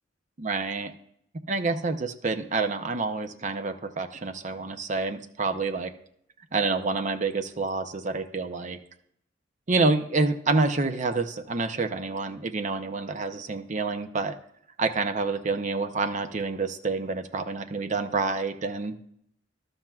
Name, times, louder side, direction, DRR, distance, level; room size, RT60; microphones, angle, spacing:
voice 1, 0.4-0.9 1.5-5.9 6.5-8.8 9.7-14.4 14.8-19.0, right 3 dB, 40° right, 9 dB, 0.7 m, -28 dB
13.0 x 12.0 x 2.4 m, 0.70 s
head